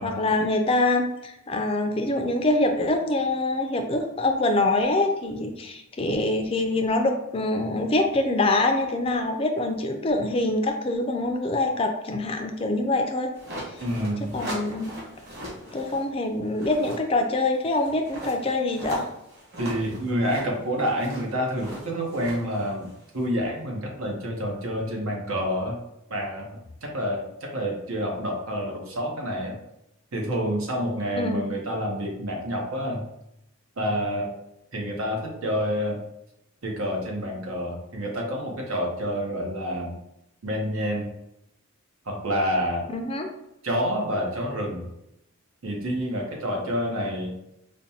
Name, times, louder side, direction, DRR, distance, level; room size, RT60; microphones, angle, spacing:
voice 1, 0.0-13.3 14.3-14.9 15.7-19.0 31.1-31.5 42.9-43.3, left 2 dB, 25° left, 4 dB, 0.3 m, -25 dB
sound 1, 13.3-16.1 16.4-23.5, equal, 50° right, 1.3 m, -39 dB
voice 2, 13.8-14.4 19.6-22.9 23.1-25.8 26.1-29.6 30.1-33.0 33.8-34.3 34.7-36.0 36.6-39.9 40.4-41.1 42.1-42.9 43.6-44.8 45.6-47.4, equal, 85° right, 0 dB, 0.9 m, -28 dB
5.2 x 2.2 x 2.7 m, 0.84 s
head